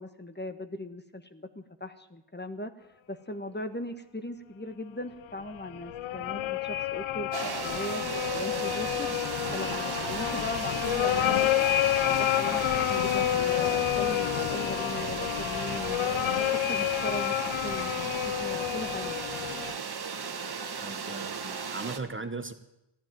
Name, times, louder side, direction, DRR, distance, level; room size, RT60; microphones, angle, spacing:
voice 1, 0.0-2.7 3.1-8.0 8.3-9.1 9.5-11.7 12.0-18.0 18.3-19.1, left 1 dB, 20° left, 9 dB, 1.4 m, -39 dB
sound 1, 5.4-19.8, left 12 dB, 75° left, 0.6 m, -29 dB
sound 2, 7.3-22.0, right 5 dB, 50° right, 1.5 m, -36 dB
voice 2, 20.8-22.5, right 3 dB, 25° right, 9 dB, 1.2 m, -38 dB
15.0 x 10.5 x 9.3 m, 0.90 s
cardioid pair, 40°, 48 cm